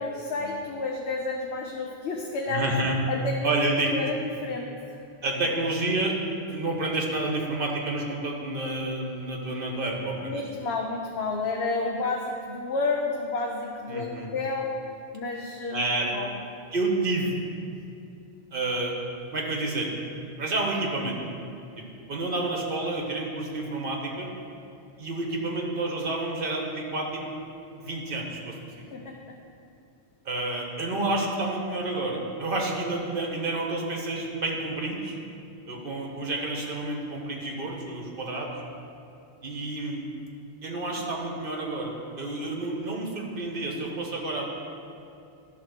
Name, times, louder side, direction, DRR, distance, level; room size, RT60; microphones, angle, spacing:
voice 1, 0.0-2.7 3.1-3.5 3.9-4.7 10.2-14.8 15.1-15.8 16.1-16.3 28.9-29.4, left 3 dB, 80° left, 1 dB, 1.0 m, -30 dB
voice 2, 2.5-3.0 3.4-3.9 5.2-10.4 13.9-14.3 15.7-16.1 16.7-17.3 18.5-18.9 19.3-19.9 20.4-21.2 21.8-24.3 25.0-27.2 27.7-28.9 30.2-35.2 35.7-38.5 39.4-40.0 40.6-44.4, right 2 dB, 60° right, 0 dB, 1.3 m, -29 dB
11.5 x 3.8 x 6.4 m, 2.6 s
omnidirectional pair, 1.1 m